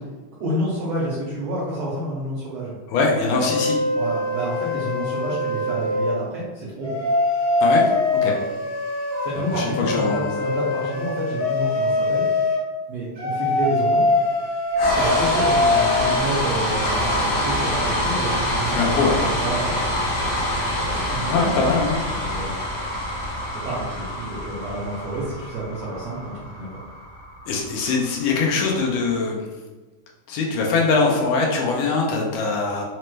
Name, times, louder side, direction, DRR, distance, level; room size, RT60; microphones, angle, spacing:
voice 1, 0.4-2.7 3.9-7.0 8.2-8.3 9.2-12.2 12.9-14.0 14.9-20.0 20.8-21.3 22.1-22.6 23.6-26.8, right 1 dB, 80° right, -6 dB, 1.3 m, -29 dB
voice 2, 2.9-3.8 7.6-7.8 8.2-8.3 9.5-10.3 18.6-19.2 21.3-22.0 27.5-29.5 30.3-32.8, left 4 dB, 80° left, -1 dB, 1.9 m, -22 dB
sound 1, 3.3-6.2 6.8-12.6 13.2-16.2, left 2 dB, 60° right, 0.5 m, -23 dB
sound 2, 14.7-28.9, equal, 65° left, 1.2 m, -26 dB
5.1 x 2.1 x 3.1 m, 1.3 s
omnidirectional pair, 3.6 m